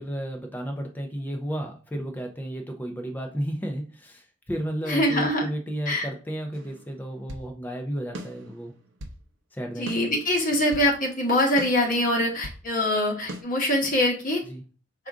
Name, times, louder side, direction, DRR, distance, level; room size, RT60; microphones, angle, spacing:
voice 1, 0.0-8.7 9.5-9.9 14.5-14.6, equal, 10° left, 3 dB, 0.5 m, -33 dB
voice 2, 4.9-5.4 5.9-6.1 9.8-14.4, left 1 dB, 45° left, 0 dB, 1.2 m, -23 dB
sound 1, 6.5-7.5 8.1-9.2 9.9-10.9 11.6-12.6 13.3-13.4, equal, 75° right, 0.7 m, -40 dB
4.8 x 2.5 x 3.5 m, 0.38 s
head